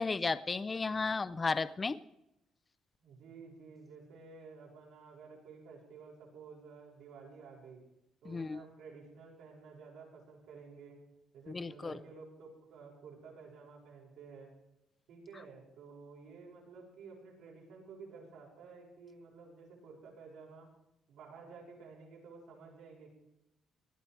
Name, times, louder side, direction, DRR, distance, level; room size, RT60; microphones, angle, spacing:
voice 1, 0.0-2.0 8.3-8.6 11.5-12.0, left 4 dB, 20° left, 14 dB, 0.4 m, -34 dB
voice 2, 3.0-7.8 8.2-11.0 11.3-14.5 15.1-20.7 21.1-23.1, right 5 dB, 80° right, -2 dB, 6.2 m, -52 dB
18.5 x 12.5 x 4.7 m, 0.86 s
cardioid pair, 165°, 0 cm